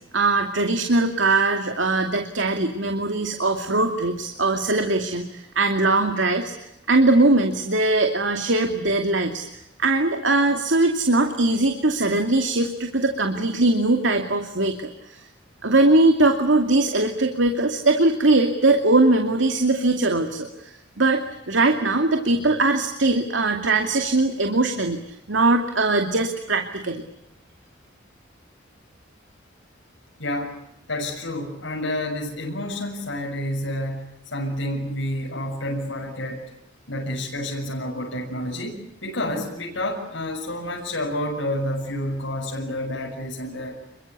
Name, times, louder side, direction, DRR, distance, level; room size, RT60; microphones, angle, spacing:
voice 1, 0.1-6.5 6.9-15.2 15.6-27.0, right 2 dB, 75° right, 5 dB, 2.5 m, -21 dB
voice 2, 30.2-30.6 30.9-36.4 36.9-43.8, left 1 dB, 85° left, -2 dB, 7.0 m, -29 dB
28.5 x 23.0 x 8.3 m, 0.82 s
head